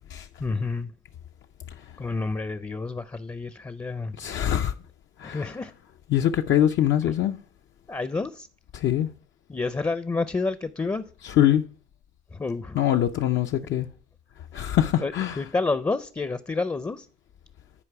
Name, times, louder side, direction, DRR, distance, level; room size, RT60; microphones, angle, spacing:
voice 1, 0.4-0.9 2.0-4.3 5.2-5.7 7.9-8.5 9.5-11.0 12.3-12.8 15.0-17.1, left 3 dB, 15° left, 0.4 m, -29 dB
voice 2, 4.2-4.7 5.2-5.4 6.1-7.4 8.8-9.1 11.4-11.6 12.8-13.9 14.5-15.3, left 11 dB, 70° left, 0.5 m, -23 dB
10.0 x 4.6 x 4.6 m
cardioid pair, 90°, 20 cm